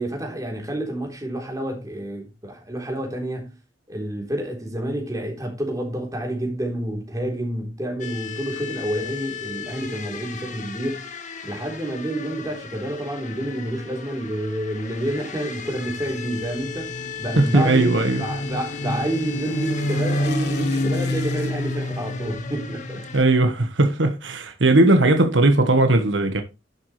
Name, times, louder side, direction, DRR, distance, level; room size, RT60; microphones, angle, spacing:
voice 1, 0.0-3.5 3.9-11.1 11.4-16.9 17.2-23.1, right 1 dB, 20° right, 3.6 m, -29 dB
sound 1, 8.0-23.2, left 6 dB, 45° left, 1.6 m, -37 dB
sound 2, 15.6-23.3, left 1 dB, 65° left, 1.3 m, -29 dB
voice 2, 17.4-18.2 23.1-26.4, right 2 dB, 80° right, 1.3 m, -18 dB
11.5 x 7.2 x 3.2 m
head